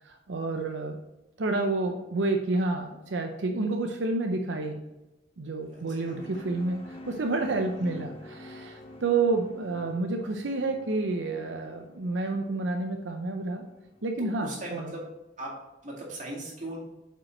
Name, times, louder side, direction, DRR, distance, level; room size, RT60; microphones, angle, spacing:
voice 1, 0.0-1.0 1.4-4.8 5.4-13.6 14.0-14.5 14.8-14.9, right 3 dB, 80° right, 4 dB, 0.6 m, -29 dB
sound 1, 5.6-14.3, left 2 dB, 35° left, 1.0 m, -47 dB
voice 2, 5.7-6.2 7.8-8.0 14.2-15.0 15.4-16.8, right 1 dB, 45° right, -3 dB, 2.2 m, -39 dB
8.5 x 5.2 x 3.1 m, 1.0 s
head